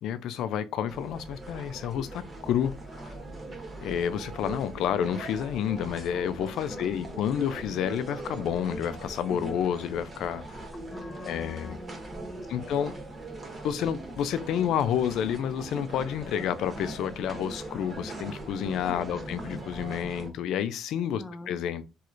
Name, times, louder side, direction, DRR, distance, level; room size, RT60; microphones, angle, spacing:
voice 1, 0.0-2.7 3.8-10.6 11.2-11.8 12.5-12.9 13.6-21.8, left 9 dB, 85° left, 0.3 m, -30 dB
sound 1, 0.9-20.3, right 2 dB, 35° right, 1.2 m, -40 dB
voice 2, 6.7-7.3 10.9-12.7 18.9-19.4 21.1-21.5, left 2 dB, 35° left, 0.7 m, -44 dB
3.1 x 3.0 x 2.4 m
cardioid pair, 90°, 0 cm